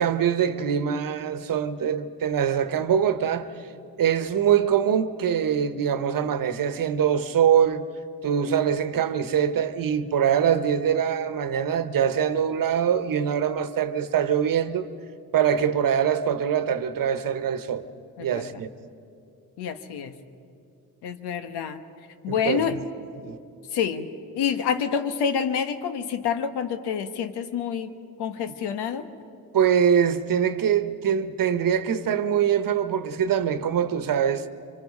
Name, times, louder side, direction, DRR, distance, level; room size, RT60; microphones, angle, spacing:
voice 1, 0.0-3.7 4.0-7.8 8.2-14.9 15.3-17.8 18.2-18.7 22.3-22.8 23.2-23.4 29.5-34.5, right 8 dB, 55° right, 1.2 m, -23 dB
voice 2, 18.2-18.5 19.6-20.2 21.0-21.8 22.2-22.8 23.7-24.1 24.3-27.9 28.2-29.1, left 7 dB, 85° left, 1.3 m, -27 dB
25.5 x 24.5 x 5.5 m
cardioid pair, 80°, 39 cm